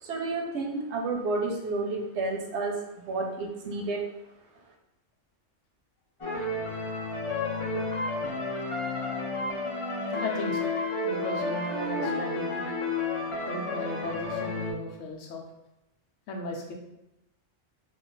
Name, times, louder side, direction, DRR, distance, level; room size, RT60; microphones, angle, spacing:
voice 1, 0.0-2.8 3.1-4.0, right 3 dB, 70° right, 1 dB, 0.8 m, -30 dB
sound 1, 6.2-14.7, left 2 dB, 55° left, 0.3 m, -31 dB
voice 2, 10.2-10.7 11.0-12.8 13.4-15.4 16.3-16.7, left 2 dB, 90° left, 1 dB, 1.0 m, -36 dB
2.4 x 2.3 x 3.8 m, 0.88 s
omnidirectional pair, 1.2 m